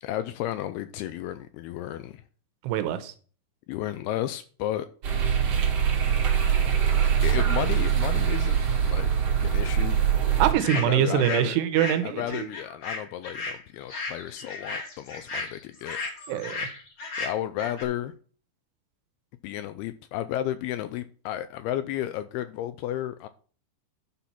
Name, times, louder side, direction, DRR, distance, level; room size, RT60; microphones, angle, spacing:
voice 1, 0.0-2.2 3.7-4.9 7.2-9.1 9.4-10.0 10.8-11.6 12.0-16.0 17.2-18.1 19.4-23.3, left 12 dB, 85° left, 2.3 m, -33 dB
voice 2, 2.6-3.1 10.4-12.5 16.3-16.6, right 11 dB, 85° right, 2.8 m, -24 dB
sound 1, 5.0-10.5, right 8 dB, 45° right, 2.4 m, -23 dB
sound 2, 10.6-11.5 11.7-17.8, left 3 dB, 35° left, 2.6 m, -35 dB
11.5 x 4.2 x 5.9 m
omnidirectional pair, 4.9 m